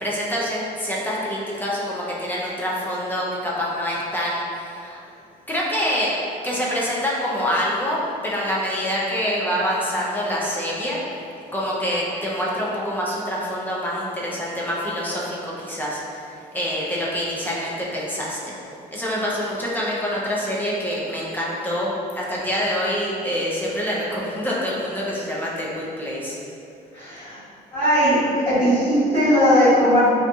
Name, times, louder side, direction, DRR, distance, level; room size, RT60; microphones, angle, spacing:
voice 1, 0.0-5.0 5.5-6.1 6.4-11.0 11.5-16.3 16.5-18.5 18.9-26.4, equal, 10° left, -6 dB, 0.4 m, -26 dB
voice 2, 26.9-27.4 27.7-28.2 28.4-30.0, equal, 30° left, -14 dB, 1.3 m, -18 dB
2.7 x 2.5 x 2.2 m, 2.6 s
cardioid pair, 110°, 17 cm